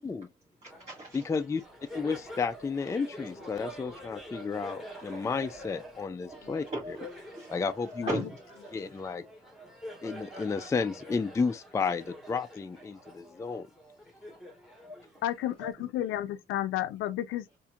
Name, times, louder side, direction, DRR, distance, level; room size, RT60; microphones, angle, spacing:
voice 1, 0.6-1.2 6.3-6.4 6.7-7.5 7.9-8.3 14.8-15.0 15.6-15.7, right 1 dB, 30° right, 1.7 m, -37 dB
Laughter, 0.7-15.7, equal, ahead, 1.4 m, -47 dB
voice 2, 1.1-1.6 1.9-7.0 7.5-8.2 8.7-9.2 10.0-13.7, left 5 dB, 15° left, 0.3 m, -32 dB
voice 3, 15.2-17.6, left 13 dB, 90° left, 0.5 m, -32 dB
4.2 x 2.6 x 2.4 m
cardioid pair, 90°, 20 cm